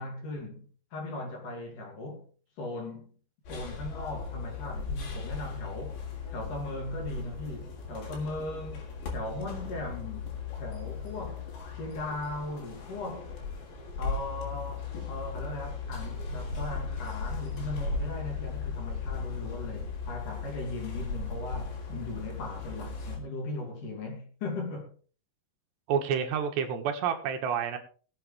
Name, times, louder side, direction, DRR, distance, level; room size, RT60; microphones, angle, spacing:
voice 1, 0.0-2.3 2.6-3.1 3.5-6.0 6.3-11.5 11.7-13.3 14.0-24.9, left 2 dB, 55° left, 3.5 m, -38 dB
sound 1, 3.5-23.2, left 4 dB, 85° left, 5.3 m, -37 dB
voice 2, 25.9-27.8, right 7 dB, 80° right, 3.5 m, -29 dB
20.5 x 8.0 x 3.2 m
omnidirectional pair, 5.0 m